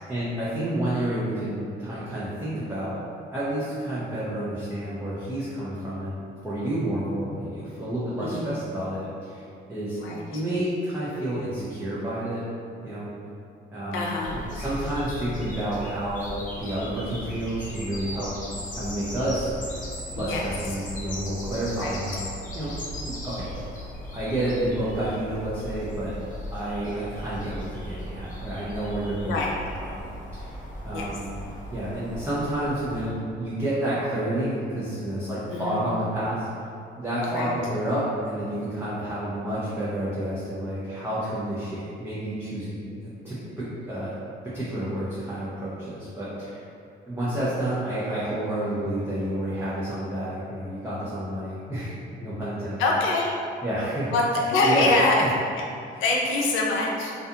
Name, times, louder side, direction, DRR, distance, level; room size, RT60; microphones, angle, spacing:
voice 1, 0.1-3.0 3.3-9.4 9.7-10.0 10.3-12.4 12.8-13.1 13.7-18.3 18.7-19.5 20.2-22.2 22.5-22.7 23.0-23.5 24.1-26.2 26.5-29.4 29.8-30.0 30.3-30.5 30.8-31.3 31.7-36.5 37.0-42.8 43.2-44.1 44.4-46.6 47.1-51.9 52.2-52.8 53.6-54.1 54.6-54.9 55.2-55.3 55.9-56.0, right 1 dB, 10° right, -11 dB, 0.6 m, -29 dB
voice 2, 8.2-8.6 10.0-10.2 13.9-14.4 20.2-20.5 21.8-22.0 29.3-29.5 30.9-31.1 35.5-35.9 37.3-37.5 52.8-53.4 54.1-55.3 55.6-55.7 56.0-57.1, left 2 dB, 85° left, -2 dB, 0.5 m, -24 dB
sound 1, 14.2-33.1, equal, 40° left, 0.7 m, -37 dB
2.4 x 2.3 x 2.8 m, 2.5 s
cardioid pair, 90°, 20 cm